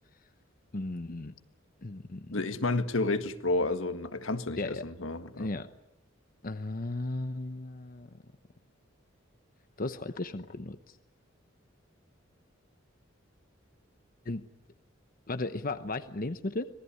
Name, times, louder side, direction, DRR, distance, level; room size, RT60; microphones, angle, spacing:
voice 1, 0.7-1.3 1.8-2.4 4.5-4.8 5.4-5.7 6.4-8.1 9.8-11.0 14.2-14.4 15.3-16.7, left 2 dB, 45° left, 0.9 m, -35 dB
voice 2, 2.3-5.5, left 2 dB, 80° left, 1.7 m, -30 dB
26.0 x 20.0 x 9.9 m
head